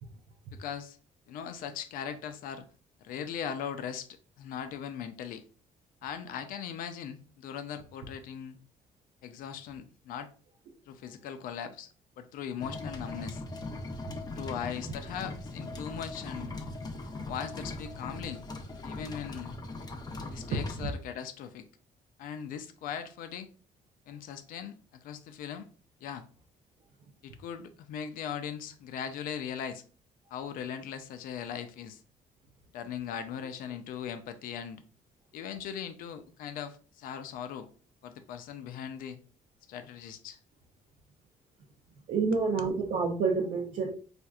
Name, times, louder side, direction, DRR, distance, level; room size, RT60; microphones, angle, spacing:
voice 1, 0.5-1.0 1.3-2.7 3.0-5.4 6.0-8.6 9.2-10.3 10.9-13.4 14.3-16.5 17.3-18.4 18.8-19.5 20.3-21.7 22.2-23.5 24.1-25.7 26.0-26.2 27.2-29.8 30.3-32.0 32.7-34.8 35.3-37.7 38.0-39.2 39.7-40.4 42.3-42.7, left 8 dB, 90° left, 0.4 m, -39 dB
sound 1, 12.6-20.9, left 2 dB, 30° left, 0.5 m, -40 dB
voice 2, 42.1-43.9, right 4 dB, 70° right, 0.6 m, -28 dB
4.2 x 2.5 x 2.3 m
cardioid pair, 130°, 14 cm